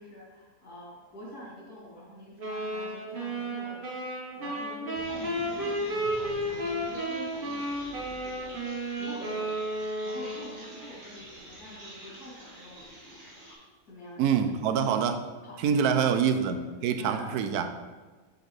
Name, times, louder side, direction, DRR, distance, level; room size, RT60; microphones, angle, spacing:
voice 1, 0.0-12.9 13.8-14.2 14.7-14.9 15.4-16.2 16.9-17.6, left 1 dB, 85° left, -5 dB, 3.3 m, -47 dB
sound 1, 2.4-10.8, right 1 dB, 35° right, 1.4 m, -33 dB
sound 2, 4.9-13.5, right 1 dB, 60° right, 2.4 m, -47 dB
voice 2, 14.2-15.2 15.6-17.7, right 7 dB, 90° right, 8 dB, 1.1 m, -25 dB
8.3 x 6.4 x 3.2 m, 1.3 s
omnidirectional pair, 1.6 m